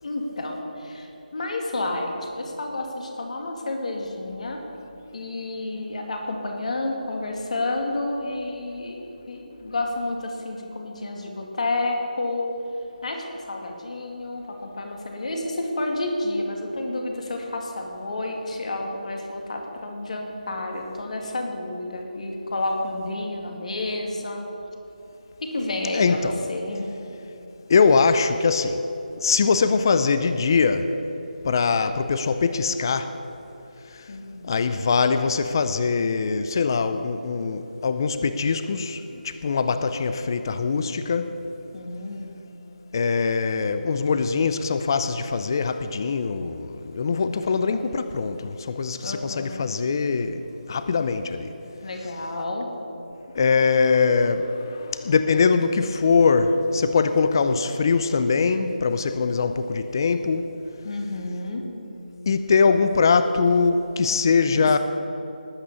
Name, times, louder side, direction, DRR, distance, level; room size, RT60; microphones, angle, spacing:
voice 1, 0.0-4.6 5.1-12.5 13.0-24.5 25.4-26.9 34.1-34.5 41.7-42.4 47.4-47.8 49.0-49.7 51.8-52.7 60.8-61.6 64.5-64.6, left 2 dB, 50° left, 2.3 m, -30 dB
voice 2, 25.9-26.4 27.7-28.8 29.2-30.9 31.4-33.1 33.9-34.0 34.4-41.4 42.9-51.5 53.3-60.5 62.3-64.8, left 5 dB, 25° left, 0.5 m, -22 dB
19.0 x 8.5 x 6.9 m
figure-of-eight pair, 170°, 5 cm